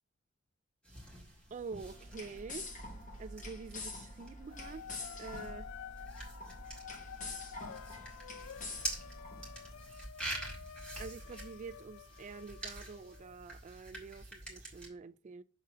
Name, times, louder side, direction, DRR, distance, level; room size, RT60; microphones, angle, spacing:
sound 1, 0.8-14.9, right 1 dB, 5° left, 2.0 m, -47 dB
voice 1, 1.5-2.7 3.2-5.7 11.0-15.4, right 4 dB, 35° right, 0.3 m, -47 dB
sound 2, 1.7-9.8, left 2 dB, 35° left, 1.2 m, -47 dB
sound 3, 4.5-13.3, left 8 dB, 65° left, 0.3 m, -50 dB
6.1 x 3.7 x 5.6 m
head